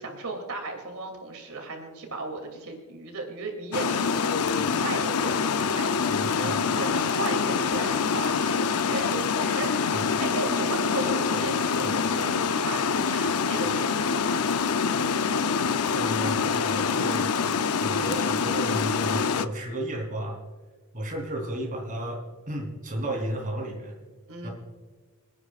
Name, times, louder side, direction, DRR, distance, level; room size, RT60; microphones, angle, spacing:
voice 1, 0.0-9.7 10.2-14.4 24.3-24.5, right 2 dB, 80° right, 2 dB, 2.8 m, -36 dB
Water, 3.7-19.4, left 5 dB, 90° left, 0.6 m, -25 dB
voice 2, 6.1-6.7 9.4-10.1 11.3-11.4 11.7-11.9 13.6-13.7 15.9-17.3 17.8-20.4 20.9-24.0 24.4-24.5, right 1 dB, 40° right, 0 dB, 3.4 m, -34 dB
26.5 x 9.9 x 2.5 m, 1.4 s
head